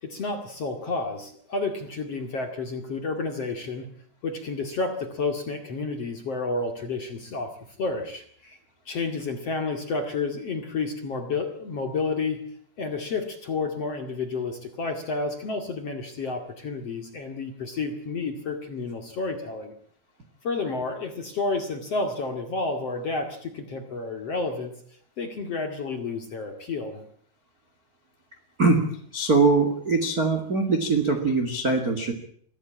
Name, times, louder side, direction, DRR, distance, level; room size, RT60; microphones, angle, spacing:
voice 1, 0.0-3.9 4.2-7.5 7.8-8.6 8.9-12.4 12.8-19.7 20.4-24.7 25.2-27.0, left 3 dB, 45° left, 4 dB, 2.4 m, -30 dB
voice 2, 28.6-32.1, right 3 dB, 35° right, 4 dB, 1.4 m, -22 dB
24.0 x 15.5 x 8.7 m, 0.62 s
omnidirectional pair, 5.5 m